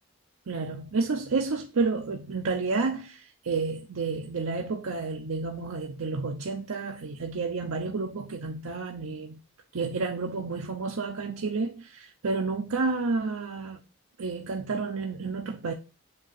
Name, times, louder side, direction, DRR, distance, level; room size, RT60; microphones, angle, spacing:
voice 1, 0.5-9.4 9.7-13.8 14.2-15.7, right 4 dB, 90° right, 0.6 m, -30 dB
7.6 x 2.8 x 5.7 m
head